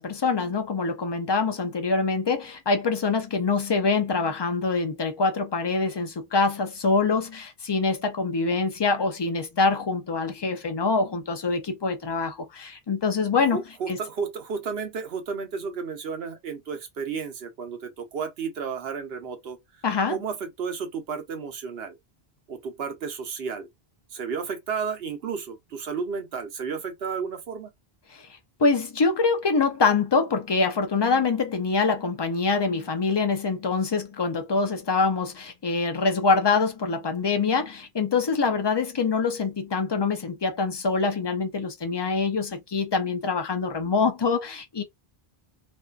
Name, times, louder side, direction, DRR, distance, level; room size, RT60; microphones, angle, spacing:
voice 1, 0.0-13.6 13.9-14.0 19.8-20.2 28.1-28.3 28.6-44.8, left 4 dB, 45° left, 0.3 m, -25 dB
voice 2, 13.5-19.6 20.1-22.0 22.5-23.7 24.1-27.7, right 5 dB, 75° right, 0.9 m, -32 dB
2.6 x 2.3 x 2.3 m
omnidirectional pair, 1.0 m